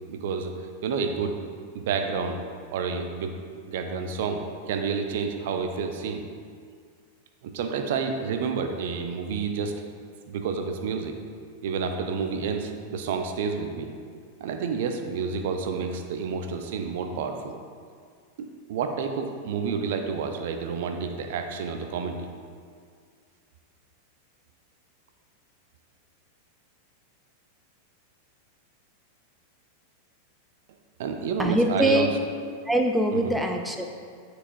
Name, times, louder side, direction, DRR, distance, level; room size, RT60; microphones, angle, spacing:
voice 1, 0.1-0.5 0.8-1.4 1.7-2.4 2.7-3.3 3.7-6.2 7.5-9.7 10.3-11.1 11.6-13.9 14.4-17.5 18.4-22.3 31.0-32.1, right 5 dB, 55° right, 5 dB, 0.5 m, -29 dB
voice 2, 31.4-32.1 32.7-33.9, right 1 dB, 5° right, 3 dB, 0.4 m, -23 dB
9.7 x 4.7 x 2.5 m, 2.1 s
figure-of-eight pair, 90°, 0 cm